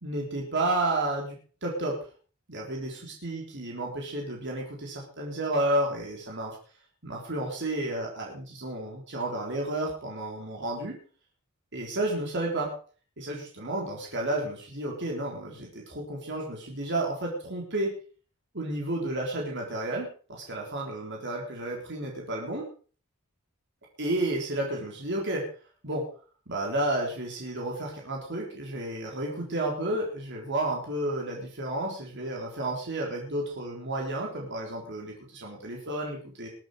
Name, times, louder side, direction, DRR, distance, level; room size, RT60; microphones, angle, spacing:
voice 1, 0.0-1.9 2.5-2.9 3.2-6.6 7.0-11.0 11.7-12.7 13.2-17.9 18.5-22.6 24.0-25.4 25.8-26.0 26.5-36.5, right 1 dB, 55° right, -1 dB, 3.7 m, -31 dB
20.5 x 8.8 x 4.9 m, 0.41 s
head